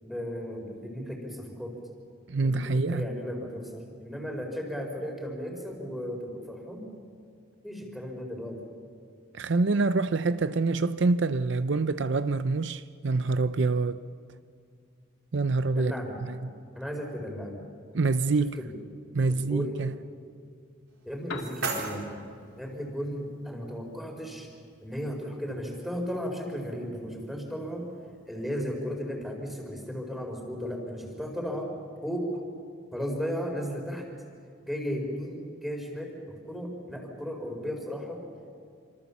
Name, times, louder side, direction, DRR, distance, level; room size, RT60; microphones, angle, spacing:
voice 1, 0.0-1.7 2.4-6.9 7.6-8.7 15.7-16.2 16.7-17.6 18.4-18.7 19.3-19.8 21.0-22.2 22.6-24.5 24.8-27.8 28.3-31.7 32.0-32.4 32.9-34.0 34.7-36.1 36.4-38.2, equal, ahead, 4.5 m, -35 dB
voice 2, 2.3-3.1 9.3-14.0 15.3-15.9 16.3-16.5 17.9-18.6 19.1-19.9, right 3 dB, 60° right, 0.6 m, -26 dB
sound 1, 20.9-22.9, right 3 dB, 80° right, 4.6 m, -37 dB
Piano, 21.0-29.1, left 3 dB, 70° left, 2.1 m, -51 dB
28.0 x 25.5 x 7.2 m
head